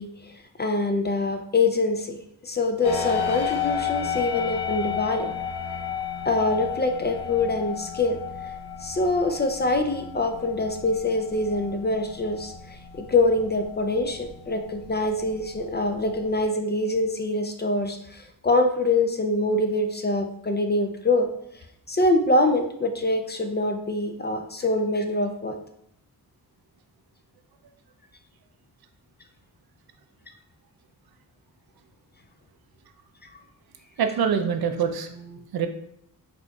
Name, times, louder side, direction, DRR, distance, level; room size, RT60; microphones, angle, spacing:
voice 1, 0.0-2.2 2.4-5.3 6.2-8.2 8.8-21.3 21.9-25.6, left 2 dB, 30° left, 6 dB, 0.4 m, -24 dB
sound 1, 2.8-16.4, left 7 dB, 85° left, 0.7 m, -33 dB
voice 2, 34.0-35.7, right 7 dB, 70° right, 7 dB, 0.5 m, -25 dB
4.1 x 2.8 x 2.3 m, 0.72 s
cardioid pair, 55°, 39 cm